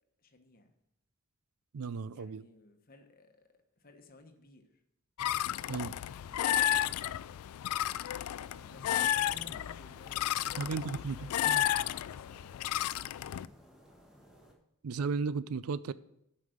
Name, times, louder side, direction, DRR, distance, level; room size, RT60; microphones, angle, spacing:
voice 1, 0.2-0.7 2.1-4.8 6.1-7.7 8.7-12.5, left 2 dB, 40° left, 1.1 m, -58 dB
voice 2, 1.7-2.5 5.7-6.0 10.6-11.6 14.8-15.9, right 5 dB, 85° right, 0.4 m, -35 dB
sound 1, 5.2-13.5, left 11 dB, 90° left, 0.3 m, -32 dB
sound 2, 8.4-14.5, left 1 dB, 5° right, 1.6 m, -58 dB
8.3 x 5.5 x 7.9 m
head